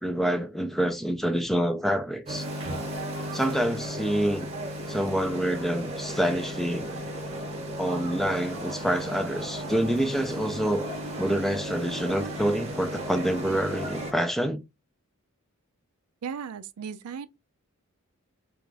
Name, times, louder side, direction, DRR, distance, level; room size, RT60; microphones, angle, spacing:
voice 1, 0.0-2.5 3.3-4.5 4.9-6.9 7.8-10.9 11.2-14.6, equal, ahead, 0.4 m, -27 dB
sound 1, 2.3-14.1, right 1 dB, 30° right, 1.0 m, -35 dB
voice 2, 16.2-17.3, right 6 dB, 85° right, 0.4 m, -36 dB
3.4 x 2.5 x 3.2 m
head